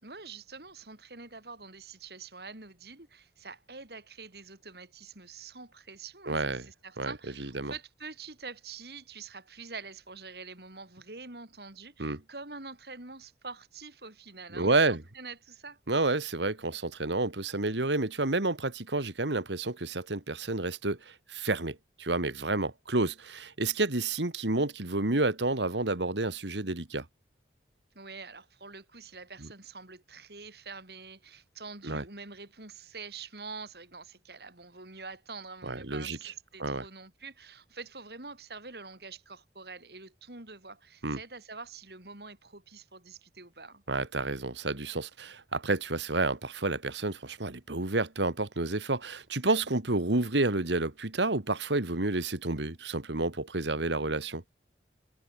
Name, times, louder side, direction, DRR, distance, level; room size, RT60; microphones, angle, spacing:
voice 1, 0.0-15.8 27.9-43.8, right 4 dB, 65° right, 4.1 m, -46 dB
voice 2, 6.3-6.6 7.0-7.1 7.4-7.7 12.0-12.2 14.5-15.0 15.9-27.1 31.8-32.0 35.6-36.2 36.6-36.8 41.0-41.2 43.9-54.4, right 2 dB, 90° right, 2.1 m, -30 dB
head